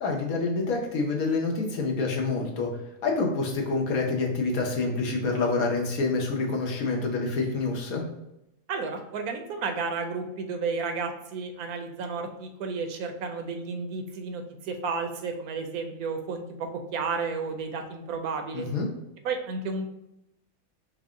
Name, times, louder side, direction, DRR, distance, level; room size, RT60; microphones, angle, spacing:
voice 1, 0.0-2.7 3.0-8.0 18.5-18.9, left 3 dB, 80° left, 0 dB, 1.3 m, -27 dB
voice 2, 8.7-18.7 19.2-19.9, right 4 dB, 90° right, 5 dB, 1.1 m, -32 dB
4.8 x 2.1 x 3.6 m, 0.87 s
omnidirectional pair, 1.5 m